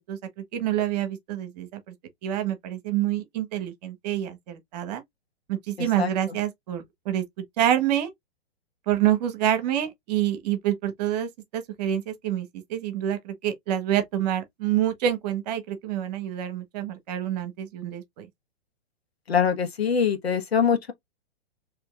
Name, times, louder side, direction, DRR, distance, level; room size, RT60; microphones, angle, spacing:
voice 1, 0.5-1.8 2.2-5.0 5.5-7.2 7.6-8.1 8.9-18.3, right 11 dB, 40° right, 1.1 m, -27 dB
voice 2, 19.3-20.9, left 7 dB, 75° left, 1.3 m, -23 dB
4.5 x 3.0 x 2.4 m
figure-of-eight pair, 115°, 32 cm